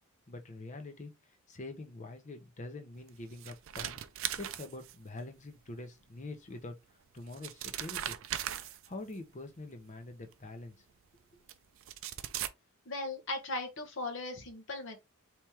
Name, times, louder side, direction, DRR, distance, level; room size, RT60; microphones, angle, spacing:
voice 1, 0.3-1.1 1.5-4.0 4.4-6.7 7.1-8.2 8.6-10.8 11.3-11.4, left 2 dB, 35° left, 0.8 m, -45 dB
sound 1, 3.1-5.2 6.6-6.7 7.2-9.1 10.3-10.4 11.5-11.6 11.8-12.5, right 11 dB, 60° right, 0.4 m, -38 dB
voice 2, 12.9-15.0, left 2 dB, 60° left, 1.0 m, -38 dB
4.4 x 3.0 x 3.4 m
head